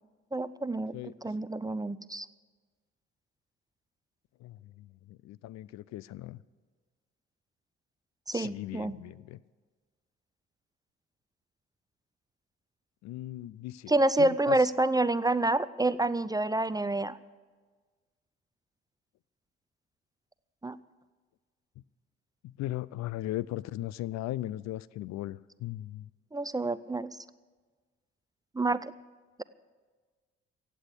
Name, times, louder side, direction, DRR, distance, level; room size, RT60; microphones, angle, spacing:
voice 1, 0.3-0.9 1.2-2.3 8.3-9.0 13.9-17.2 20.6-20.8 26.3-27.2 28.5-28.9, right 2 dB, 10° right, 16 dB, 0.5 m, -28 dB
voice 2, 4.4-6.4 8.3-9.4 13.0-13.9 14.2-14.6 22.4-26.1, left 15 dB, 55° left, 21 dB, 0.5 m, -38 dB
15.5 x 8.5 x 8.4 m, 1.4 s
hypercardioid pair, 45°, 32 cm